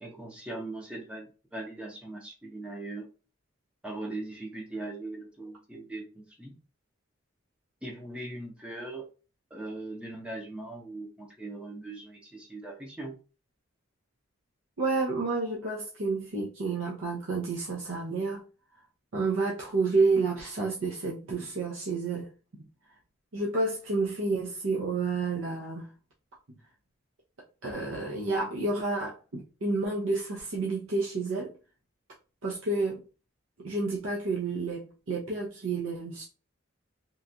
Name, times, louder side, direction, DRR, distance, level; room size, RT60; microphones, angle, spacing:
voice 1, 0.0-3.1 3.8-6.6 7.8-9.1 9.5-13.2, right 2 dB, 5° right, 0.5 m, -40 dB
voice 2, 14.8-18.4 19.1-22.3 23.3-25.9 27.6-31.5 32.4-33.0 33.6-36.2, right 3 dB, 85° right, 0.7 m, -30 dB
3.1 x 2.3 x 2.6 m
head